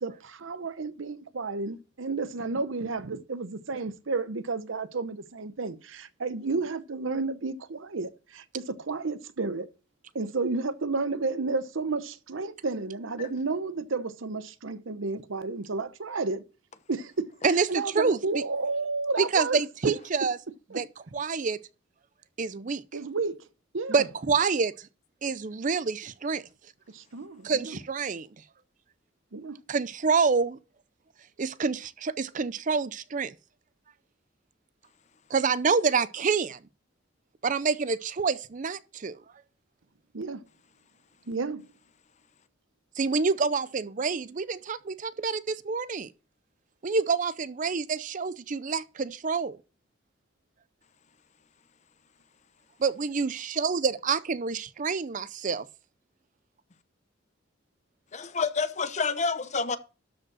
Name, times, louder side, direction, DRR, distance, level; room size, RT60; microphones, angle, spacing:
voice 1, 0.0-9.7 10.1-16.4 16.9-17.3 17.7-19.6 20.7-20.8 22.9-23.4 23.7-24.0 26.9-27.8 29.3-29.6 40.1-40.4 41.3-41.7, right 3 dB, 80° right, 0.8 m, -31 dB
voice 2, 17.4-18.4 19.2-20.4 20.7-20.9 21.1-21.6 22.4-22.8 23.9-24.9 25.2-26.4 27.4-28.3 29.7-30.6 31.4-33.3 35.3-36.6 37.4-39.2 43.0-46.1 46.8-49.6 52.8-55.7, right 5 dB, 40° right, 0.5 m, -27 dB
voice 3, 58.1-59.8, left 4 dB, 35° left, 0.8 m, -28 dB
12.5 x 5.2 x 6.0 m
head